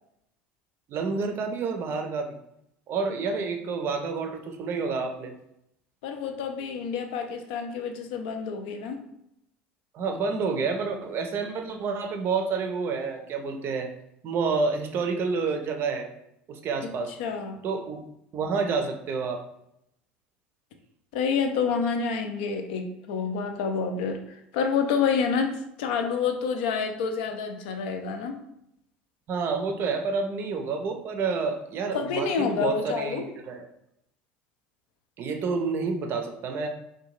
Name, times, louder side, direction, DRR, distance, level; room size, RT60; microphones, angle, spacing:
voice 1, 0.9-2.4 2.9-5.3 9.9-13.9 14.2-16.1 16.5-17.2 17.6-18.0 18.3-19.4 29.3-33.7 35.2-36.7, right 4 dB, 45° right, 5 dB, 0.5 m, -29 dB
voice 2, 6.0-9.0 17.2-17.6 21.1-28.4 31.9-33.2, left 5 dB, 65° left, 5 dB, 0.4 m, -28 dB
2.7 x 2.2 x 3.0 m, 0.79 s
figure-of-eight pair, 70°, 6 cm